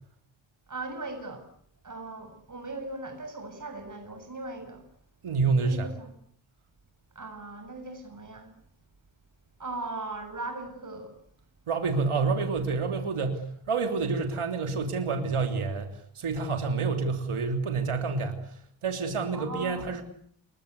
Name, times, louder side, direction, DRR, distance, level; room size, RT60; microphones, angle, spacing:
voice 1, 0.7-1.5 1.8-4.8 5.6-6.1 7.2-8.5 9.6-11.1 19.3-19.9, right 2 dB, 40° right, 7.5 m, -38 dB
voice 2, 5.2-5.9 11.7-20.0, right 4 dB, 85° right, 3.4 m, -28 dB
29.5 x 23.0 x 8.3 m
wide cardioid pair, 155°, 49 cm